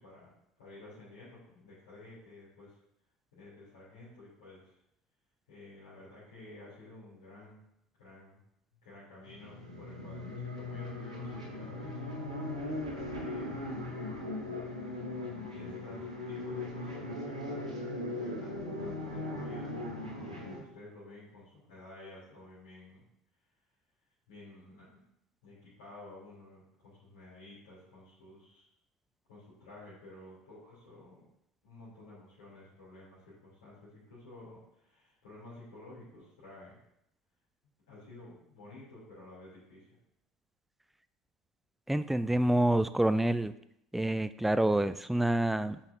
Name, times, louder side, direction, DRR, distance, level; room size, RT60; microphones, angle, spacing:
voice 1, 0.0-2.8 3.3-4.8 5.5-7.6 8.0-8.4 8.8-12.3 13.2-14.0 15.5-17.7 18.0-23.0 24.3-25.0 25.4-28.6 29.3-31.3 31.6-36.8 37.9-39.9, left 2 dB, 70° left, -10 dB, 2.9 m, -52 dB
sound 1, 9.2-20.6, left 2 dB, 90° right, 1.5 m, -39 dB
voice 2, 41.9-43.5 43.9-45.8, right 1 dB, 5° right, 13 dB, 0.4 m, -27 dB
8.8 x 5.8 x 2.6 m, 0.80 s
figure-of-eight pair, 65°, 4 cm